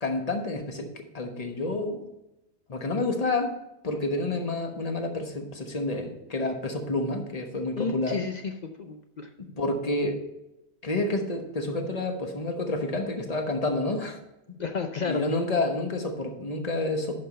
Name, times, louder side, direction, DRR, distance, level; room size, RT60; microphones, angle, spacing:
voice 1, 0.0-2.0 2.7-3.5 3.8-8.2 9.4-10.2 10.8-14.2 15.0-17.2, left 2 dB, 25° left, 3 dB, 1.2 m, -29 dB
voice 2, 7.8-9.3 14.6-15.2, left 5 dB, 80° left, 5 dB, 0.4 m, -32 dB
11.0 x 5.4 x 4.2 m, 0.92 s
omnidirectional pair, 1.6 m